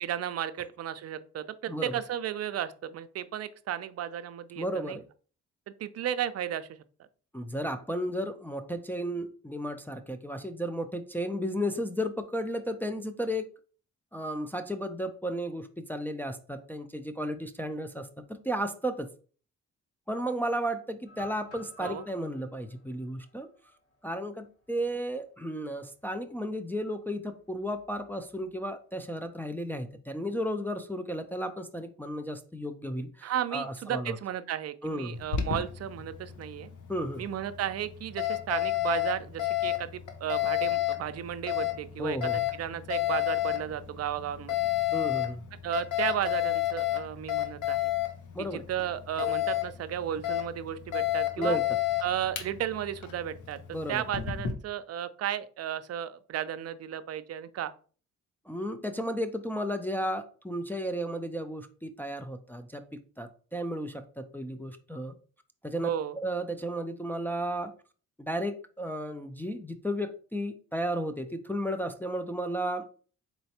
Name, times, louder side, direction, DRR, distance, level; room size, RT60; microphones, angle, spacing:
voice 1, 0.0-5.0 5.8-6.7 21.8-22.0 33.2-36.7 37.2-42.2 42.5-44.6 45.6-47.9 48.4-51.6 52.0-53.6 53.9-57.7 65.8-66.2, right 10 dB, 50° right, 12 dB, 0.5 m, -34 dB
voice 2, 1.7-2.0 4.6-5.0 7.3-13.5 14.1-19.1 20.1-23.5 24.0-34.2 34.8-35.2 36.9-37.3 42.0-42.4 44.9-45.5 48.3-48.6 51.4-51.6 53.7-54.0 58.5-62.8 63.2-65.1 65.6-67.7 68.2-72.9, equal, 5° left, 6 dB, 0.4 m, -33 dB
sound 1, 21.1-25.0 25.4-25.5 26.0-26.3 27.6-28.5, left 2 dB, 45° left, 1.5 m, -53 dB
Alarm, 35.1-54.5, left 13 dB, 70° left, 0.8 m, -32 dB
4.3 x 3.0 x 2.8 m, 0.40 s
supercardioid pair, 60°, 32 cm